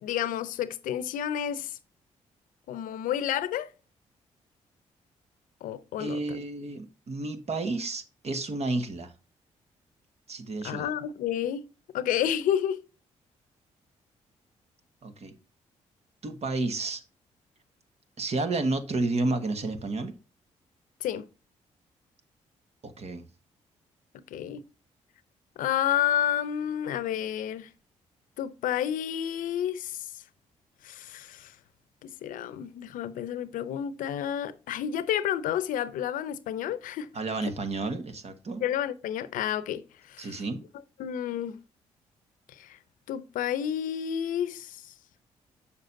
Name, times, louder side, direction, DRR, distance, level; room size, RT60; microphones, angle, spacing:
voice 1, 0.0-1.8 2.7-3.7 5.6-6.4 10.6-11.6 11.9-12.8 21.0-21.2 24.3-24.6 25.6-27.7 28.4-30.1 30.8-31.5 32.0-37.1 38.6-40.4 41.0-41.6 42.5-42.8 43.1-44.9, left 10 dB, 80° left, 0.6 m, -30 dB
voice 2, 6.0-9.1 10.3-10.9 15.0-15.3 16.2-17.0 18.2-20.1 22.8-23.2 37.1-38.7 40.2-40.6, right 3 dB, 50° right, 1.3 m, -31 dB
7.2 x 6.5 x 2.6 m
supercardioid pair, 55°, 14 cm